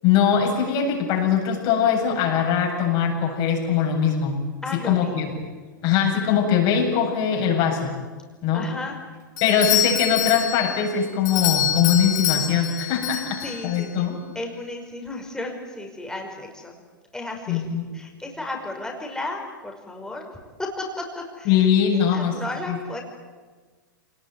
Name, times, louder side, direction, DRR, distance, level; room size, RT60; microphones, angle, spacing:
voice 1, 0.0-4.4 4.7-5.3 5.8-7.9 8.4-8.7 9.4-14.2 17.5-17.8 21.4-22.4 22.7-22.8, left 7 dB, 45° left, 1 dB, 7.7 m, -21 dB
voice 2, 4.6-5.3 8.5-9.0 13.4-14.1 14.4-16.7 17.1-17.6 17.9-20.3 20.6-20.9 21.2-21.5 22.1-23.0, left 2 dB, 5° left, 1 dB, 5.5 m, -33 dB
Doorbell, 9.4-13.8, left 10 dB, 60° left, 6.8 m, -26 dB
27.0 x 19.5 x 9.6 m, 1.4 s
hypercardioid pair, 105°, 11 cm